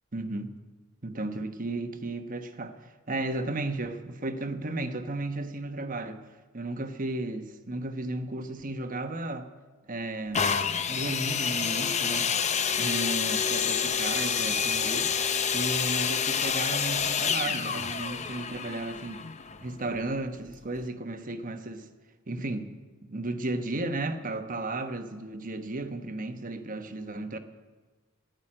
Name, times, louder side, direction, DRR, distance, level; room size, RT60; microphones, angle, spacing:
voice 1, 0.1-0.5 1.0-6.2 6.5-9.5 9.9-10.6 10.9-12.3 12.8-15.1 15.5-19.2 19.6-21.9 22.3-27.4, right 2 dB, 40° right, 1.1 m, -34 dB
sound 1, 10.3-20.0 20.8-20.9, left 7 dB, 35° left, 0.6 m, -28 dB
14.0 x 10.5 x 8.9 m
head